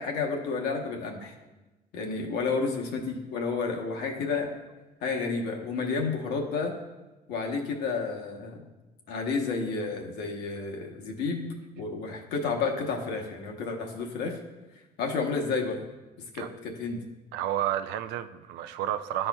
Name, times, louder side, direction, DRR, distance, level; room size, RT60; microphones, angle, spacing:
voice 1, 0.0-1.3 1.9-4.5 5.0-6.7 7.3-8.6 9.1-14.4 15.0-15.8 16.3-17.0, left 4 dB, 80° left, 2 dB, 0.9 m, -31 dB
voice 2, 17.3-19.3, right 11 dB, 85° right, 10 dB, 0.4 m, -30 dB
11.0 x 4.3 x 2.2 m, 1.1 s
cardioid pair, 110°, 17 cm